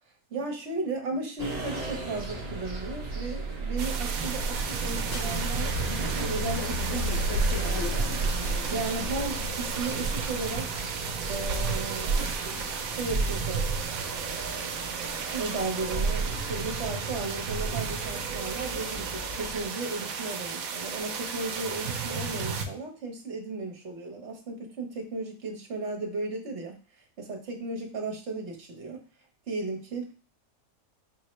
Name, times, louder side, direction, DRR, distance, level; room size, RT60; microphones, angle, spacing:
voice 1, 0.3-8.1 8.7-10.7 11.3-12.4 12.9-13.6 15.3-26.8 27.2-29.0 29.5-30.0, right 3 dB, 55° right, 1 dB, 1.3 m, -35 dB
sound 1, 1.4-19.7, right 3 dB, 35° right, 0.9 m, -35 dB
sound 2, 3.8-22.7, right 5 dB, 75° right, 1.1 m, -32 dB
sound 3, 5.0-10.6, left 3 dB, 60° left, 0.9 m, -35 dB
5.3 x 2.7 x 3.1 m, 0.36 s
omnidirectional pair, 1.5 m